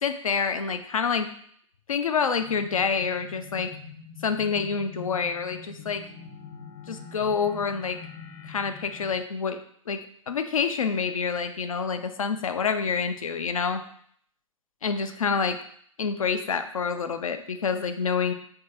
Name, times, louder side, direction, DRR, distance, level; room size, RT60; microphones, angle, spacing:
voice 1, 0.0-1.3 1.9-3.7 4.2-6.1 6.9-8.0 8.5-9.6 9.9-13.8 14.8-15.6 16.0-18.3, left 6 dB, 80° left, 8 dB, 0.5 m, -27 dB
sound 1, 2.4-9.2, left 5 dB, 35° left, 0.6 m, -44 dB
3.6 x 2.8 x 4.2 m, 0.63 s
figure-of-eight pair, 115°, 17 cm